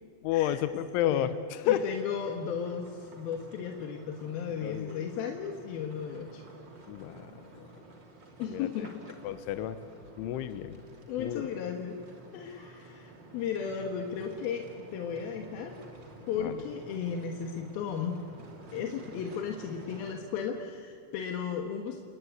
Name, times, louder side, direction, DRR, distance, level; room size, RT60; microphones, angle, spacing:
voice 1, 0.2-1.8 4.6-5.0 6.9-7.3 7.6-7.7 8.5-8.7 9.3-9.8 10.2-10.8 11.2-11.4 16.4-16.6, left 11 dB, 85° left, 11 dB, 3.3 m, -31 dB
voice 2, 1.6-6.4 8.4-9.0 11.1-12.0 12.3-15.7 16.3-18.2 18.7-22.0, left 7 dB, 65° left, 4 dB, 2.8 m, -35 dB
sound 1, 1.6-20.2, right 2 dB, 30° right, 2.7 m, -51 dB
29.5 x 20.0 x 9.4 m, 2.5 s
omnidirectional pair, 5.5 m